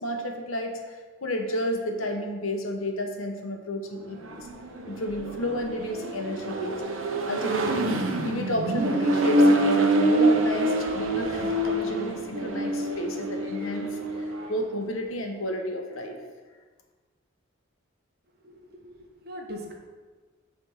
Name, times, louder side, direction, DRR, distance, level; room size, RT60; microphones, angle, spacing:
voice 1, 0.0-4.5 4.9-6.8 7.3-16.2, equal, 90° left, 3 dB, 1.1 m, -32 dB
Accelerating revving vroom, 4.1-14.6, right 1 dB, 80° right, 0.8 m, -25 dB
voice 2, 18.4-19.7, equal, 50° right, 1 dB, 1.2 m, -41 dB
7.7 x 3.5 x 6.4 m, 1.4 s
head